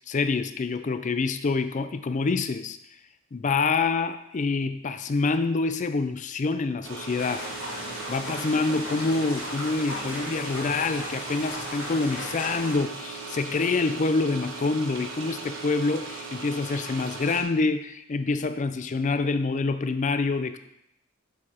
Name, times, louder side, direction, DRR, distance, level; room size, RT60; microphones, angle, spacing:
voice 1, 0.1-2.8 3.3-7.4 8.1-20.6, left 3 dB, 40° left, 10 dB, 0.4 m, -26 dB
sound 1, 6.8-17.4, right 4 dB, 65° right, 1.2 m, -38 dB
sound 2, 7.2-12.8, left 1 dB, 75° left, 2.6 m, -36 dB
7.2 x 4.7 x 4.3 m, 0.79 s
head